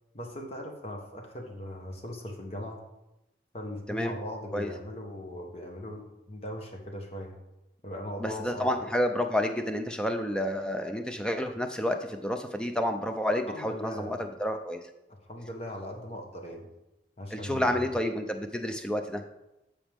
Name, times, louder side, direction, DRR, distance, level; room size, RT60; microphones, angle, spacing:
voice 1, 0.1-2.8 3.5-7.4 7.8-8.8 13.5-14.2 15.3-16.7 17.2-17.9, left 1 dB, 35° left, 1 dB, 1.2 m, -39 dB
voice 2, 8.2-14.8 17.3-19.2, left 1 dB, 5° left, 6 dB, 0.5 m, -30 dB
13.5 x 5.1 x 3.5 m, 0.94 s
head